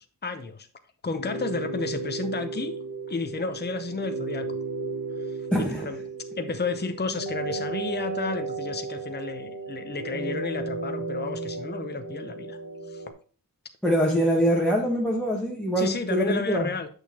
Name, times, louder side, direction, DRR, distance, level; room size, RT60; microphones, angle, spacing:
voice 1, 0.2-0.7 1.0-2.7 3.1-4.6 5.2-6.0 6.4-12.6 12.9-13.1 15.8-16.9, left 4 dB, 25° left, 8 dB, 0.7 m, -32 dB
sound 1, 1.1-13.1, right 3 dB, 65° right, 1.4 m, -34 dB
voice 2, 5.5-5.9 13.8-16.7, equal, 5° left, -2 dB, 1.4 m, -24 dB
8.0 x 6.4 x 2.8 m, 0.42 s
wide cardioid pair, 70°, 40 cm